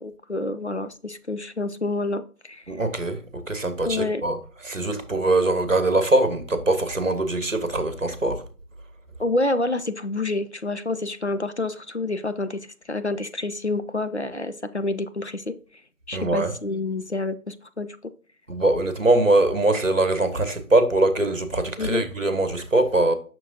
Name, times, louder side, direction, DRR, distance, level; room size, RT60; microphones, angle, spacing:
voice 1, 0.0-2.6 3.9-4.2 9.2-12.6 12.9-15.5 16.1-17.9 21.8-22.0, left 2 dB, 50° left, 0.5 m, -28 dB
voice 2, 2.7-4.4 4.6-8.4 16.1-16.5 18.5-23.1, right 2 dB, 60° right, 1.2 m, -22 dB
6.2 x 6.1 x 2.8 m
figure-of-eight pair, 180°, 44 cm